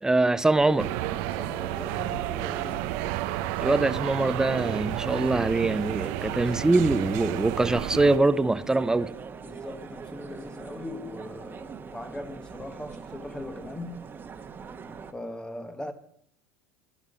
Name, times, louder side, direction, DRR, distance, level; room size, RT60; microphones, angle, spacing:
voice 1, 0.0-0.9 3.6-9.1, right 2 dB, 10° right, 0.5 m, -23 dB
sound 1, 0.5-15.1, right 6 dB, 30° right, 1.1 m, -42 dB
sound 2, 0.8-8.2, right 15 dB, 70° right, 0.6 m, -31 dB
voice 2, 1.2-3.0 6.2-7.0 9.4-14.0 15.1-15.9, left 1 dB, 10° left, 1.1 m, -40 dB
11.5 x 11.0 x 5.2 m
supercardioid pair, 100°, 7 cm